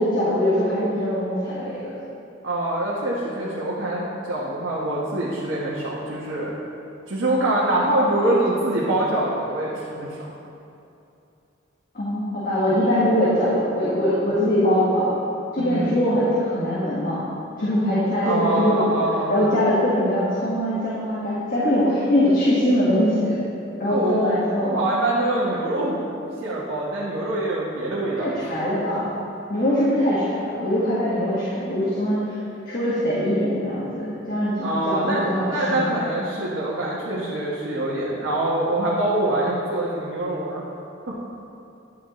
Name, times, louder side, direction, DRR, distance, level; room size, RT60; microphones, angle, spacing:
voice 1, 0.0-1.9 11.9-15.0 15.5-17.2 17.6-18.9 19.3-23.4 23.8-24.8 25.4-25.5 28.2-29.1 29.5-32.3 32.7-35.9, equal, 50° left, -9 dB, 1.7 m, -22 dB
voice 2, 2.4-6.5 7.1-10.2 15.6-15.9 18.2-19.4 23.9-24.3 24.6-28.4 34.6-40.6 41.1-41.2, right 1 dB, 90° right, -7 dB, 1.3 m, -24 dB
11.0 x 8.8 x 3.2 m, 2.7 s
head